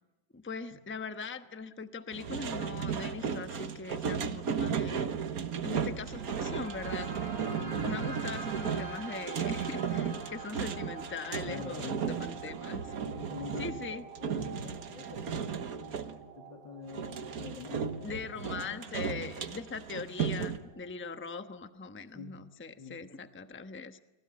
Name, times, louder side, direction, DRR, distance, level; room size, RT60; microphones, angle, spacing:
voice 1, 0.3-5.1 5.6-7.1 7.8-12.9 13.6-14.0 18.0-24.0, left 4 dB, 10° left, 9 dB, 0.8 m, -41 dB
sound 1, 2.1-16.2 16.9-20.6, right 7 dB, 55° right, 1.6 m, -35 dB
sound 2, 5.4-21.4, right 4 dB, 75° right, 4.5 m, -46 dB
voice 2, 7.6-8.1 11.4-12.4 13.0-19.3 22.1-22.3 22.8-23.0, left 4 dB, 80° left, 2 dB, 3.2 m, -46 dB
30.0 x 20.0 x 8.7 m, 1.1 s
omnidirectional pair, 2.0 m